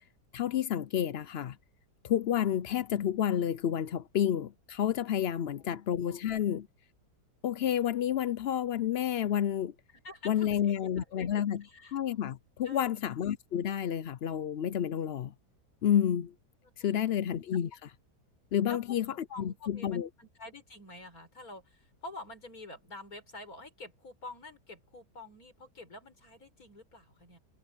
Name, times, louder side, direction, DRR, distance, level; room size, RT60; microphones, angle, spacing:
voice 1, 0.3-1.6 2.0-6.7 7.4-9.7 10.2-11.6 11.9-15.3 15.8-16.3 16.8-17.7 18.5-19.1 19.4-20.1, left 10 dB, 75° left, 0.5 m, -30 dB
voice 2, 9.9-12.0 12.6-12.9 16.6-17.1 18.7-27.4, left 2 dB, 55° left, 5.6 m, -48 dB
omnidirectional pair, 1.8 m